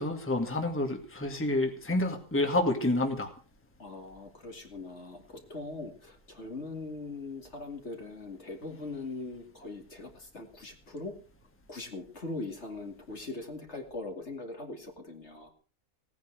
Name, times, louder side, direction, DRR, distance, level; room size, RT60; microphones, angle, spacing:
voice 1, 0.0-3.3, left 2 dB, 10° left, 4 dB, 2.1 m, -29 dB
voice 2, 3.8-11.1 11.7-15.5, left 3 dB, 50° left, 3 dB, 2.8 m, -41 dB
17.5 x 9.7 x 6.4 m, 0.38 s
omnidirectional pair, 1.6 m